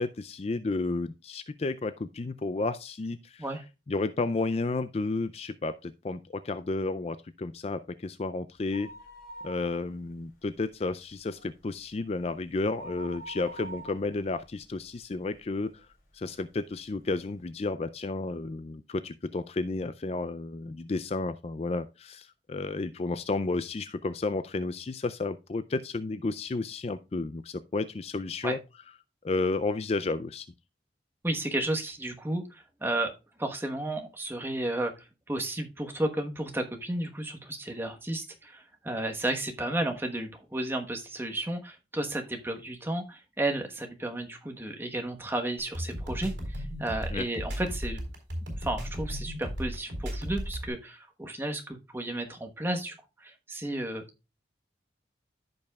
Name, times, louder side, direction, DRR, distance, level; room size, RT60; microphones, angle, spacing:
voice 1, 0.0-3.5 3.9-8.9 9.4-15.9 16.1-28.6 29.2-30.5 47.1-47.2, left 3 dB, 35° left, 0.4 m, -32 dB
sound 1, 8.6-10.2 10.5-10.6 11.1-15.5 16.0-16.1 16.9-17.0 17.2-17.3, right 2 dB, 50° left, 3.3 m, -46 dB
voice 2, 31.2-48.0 48.5-54.0, right 1 dB, 10° right, 1.2 m, -33 dB
sound 2, 45.6-50.7, equal, 75° right, 4.2 m, -35 dB
14.5 x 5.4 x 2.3 m
head